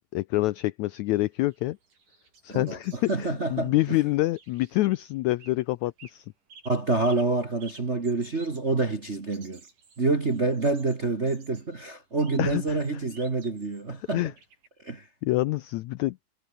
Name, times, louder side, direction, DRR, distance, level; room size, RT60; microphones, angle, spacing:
voice 1, 0.1-1.8 2.4-6.2 12.4-12.8 14.1-14.3 15.2-16.2, left 18 dB, 85° left, 1.6 m, -26 dB
sound 1, 1.1-5.6 5.8-6.2 6.5-13.9 14.4-14.7, right 5 dB, 65° right, 7.2 m, -54 dB
voice 2, 2.5-4.0 6.6-9.6 10.0-14.2 14.8-15.0, right 3 dB, 30° right, 1.2 m, -27 dB
omnidirectional pair, 4.0 m